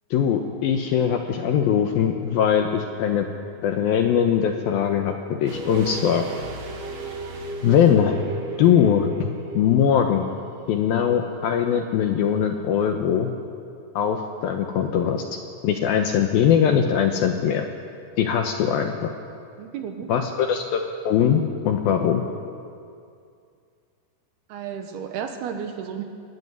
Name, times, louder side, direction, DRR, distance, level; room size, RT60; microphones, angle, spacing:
voice 1, 0.1-3.3 3.6-5.1 5.4-6.3 7.6-8.2 8.6-10.3 10.7-13.3 14.0-15.2 15.6-17.7 18.2-19.1 20.1-21.4 21.7-22.2, left 8 dB, 75° left, 5 dB, 2.3 m, -21 dB
sound 1, 5.5-10.3 10.6-10.7, right 3 dB, 45° right, 2.4 m, -35 dB
voice 2, 19.6-20.1 24.5-26.0, right 8 dB, 70° right, 6 dB, 2.8 m, -32 dB
23.0 x 13.5 x 9.6 m, 2.4 s
omnidirectional pair, 5.2 m